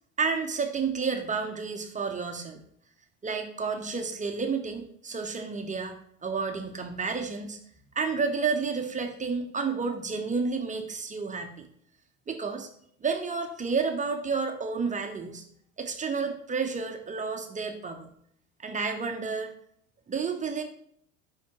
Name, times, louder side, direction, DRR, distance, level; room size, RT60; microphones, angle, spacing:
voice 1, 0.2-2.6 3.2-6.0 6.2-7.6 7.9-11.7 12.3-12.7 13.0-15.4 15.8-18.1 18.6-19.5 20.1-20.6, right 5 dB, 20° right, 5 dB, 0.8 m, -30 dB
10.0 x 3.6 x 2.9 m, 0.66 s
hypercardioid pair, 75°, 40 cm